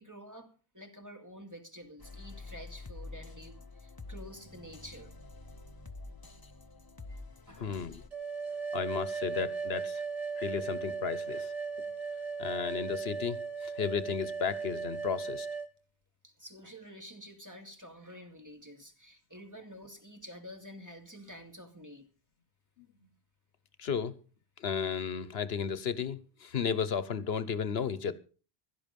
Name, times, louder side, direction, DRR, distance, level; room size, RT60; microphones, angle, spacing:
voice 1, 0.0-5.1 7.1-7.2 7.5-7.8 16.2-22.1, equal, 15° right, 2.2 m, -49 dB
sound 1, 2.0-8.1, left 3 dB, 25° left, 0.9 m, -47 dB
voice 2, 7.6-8.0 8.7-10.0 10.4-11.5 12.4-15.5 22.8-22.9 23.8-24.2 24.6-28.1, left 6 dB, 75° left, 1.2 m, -34 dB
sound 2, 8.1-15.7, right 5 dB, 35° right, 1.5 m, -37 dB
16.0 x 12.0 x 5.3 m
omnidirectional pair, 1.0 m